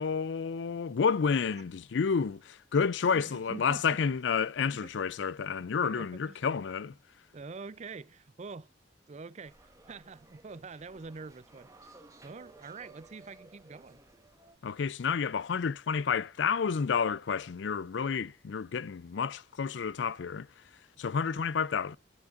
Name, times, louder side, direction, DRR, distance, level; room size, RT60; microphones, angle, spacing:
voice 1, 0.0-6.9 14.6-20.5 21.0-22.0, left 6 dB, 65° left, 0.4 m, -30 dB
voice 2, 3.1-4.1 4.6-4.9 5.8-6.5 7.3-8.7 9.1-11.9 12.2-14.0, right 4 dB, 35° right, 0.5 m, -46 dB
sound 1, 9.4-14.6, right 2 dB, 15° right, 1.2 m, -57 dB
13.0 x 9.6 x 2.5 m
head